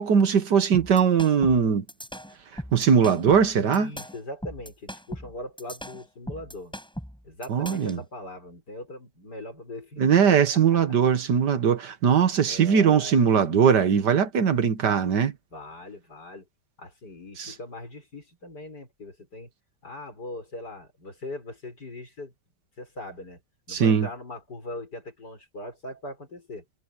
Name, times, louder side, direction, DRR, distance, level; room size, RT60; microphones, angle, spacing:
voice 1, 0.0-1.8 2.5-3.9 7.5-8.0 10.0-15.3 17.4-17.5 23.7-24.1, right 7 dB, 70° right, 2.0 m, -20 dB
sound 1, 0.7-8.0, equal, ahead, 7.6 m, -38 dB
voice 2, 3.5-6.8 7.2-10.2 10.5-10.6 12.4-13.2 15.5-16.5 16.8-19.5 19.8-22.3 22.8-23.4 23.7-26.7, left 1 dB, 65° left, 7.0 m, -40 dB
omnidirectional pair, 1.9 m